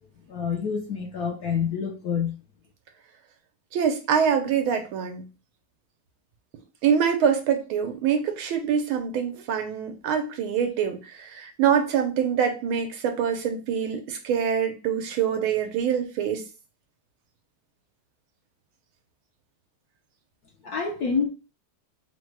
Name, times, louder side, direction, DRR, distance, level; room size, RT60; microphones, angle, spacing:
voice 1, 0.3-2.3 20.6-21.3, left 6 dB, 65° left, 1 dB, 1.0 m, -27 dB
voice 2, 3.7-5.3 6.8-16.4, right 7 dB, 85° right, 5 dB, 1.7 m, -25 dB
4.0 x 2.2 x 4.6 m, 0.31 s
omnidirectional pair, 2.2 m